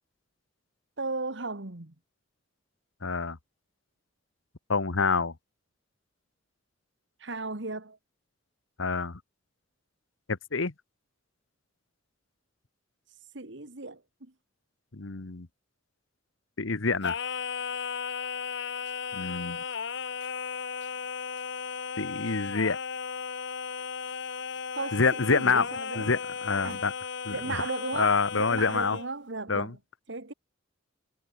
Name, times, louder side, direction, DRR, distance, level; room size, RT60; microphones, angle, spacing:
voice 1, 1.0-1.9 7.2-8.0 13.3-14.3 24.7-26.1 26.6-26.8 27.3-29.8 30.1-30.3, right 3 dB, 60° right, 1.8 m, -36 dB
voice 2, 3.0-3.4 4.7-5.3 8.8-9.2 10.3-10.7 14.9-15.5 16.6-17.2 19.1-19.6 22.0-22.8 24.9-25.7 26.0-26.9 27.2-27.3 28.0-29.0 29.5-29.7, left 4 dB, 80° left, 1.3 m, -27 dB
Singing, 17.0-29.1, left 6 dB, 60° left, 0.9 m, -35 dB
head